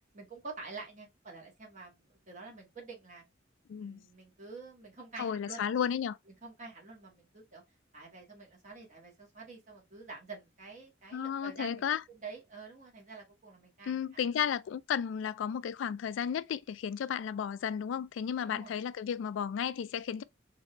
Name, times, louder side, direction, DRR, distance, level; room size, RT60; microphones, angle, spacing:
voice 1, 0.1-3.2 3.8-5.7 6.4-7.6 7.9-11.8 12.1-14.0 14.3-14.4 18.4-18.7, right 4 dB, 40° right, 1.6 m, -48 dB
voice 2, 3.7-4.0 5.2-6.2 11.1-12.0 13.9-20.2, left 8 dB, 85° left, 0.3 m, -33 dB
3.8 x 2.7 x 3.1 m
head